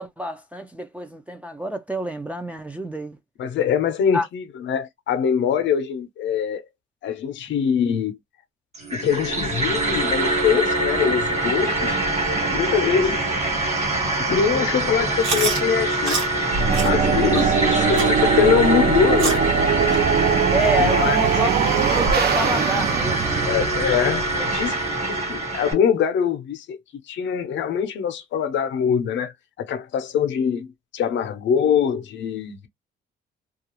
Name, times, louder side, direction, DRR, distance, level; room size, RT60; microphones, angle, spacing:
voice 1, 0.0-3.2 4.1-4.3 13.1-13.2 17.6-18.0 20.5-23.6 24.8-24.9, equal, 5° right, 0.4 m, -28 dB
voice 2, 3.4-6.6 7.0-8.2 8.9-12.0 12.5-13.3 14.0-16.2 16.8-19.4 20.8-21.2 23.4-24.8 25.0-26.8 27.1-32.7, left 7 dB, 70° left, 0.6 m, -23 dB
sound 1, 8.7-25.7, right 2 dB, 35° right, 1.3 m, -24 dB
Chewing mastication, 15.2-15.6 16.1-16.3 16.7-16.9 17.3-17.5 18.0-18.1 18.6-18.7 19.2-19.5 19.9-20.0 20.6-20.7 21.2-21.3 21.9-22.0, right 4 dB, 85° right, 1.1 m, -27 dB
sound 2, 16.5-24.6, right 6 dB, 55° right, 0.6 m, -22 dB
2.4 x 2.3 x 2.9 m
cardioid pair, 90°, 20 cm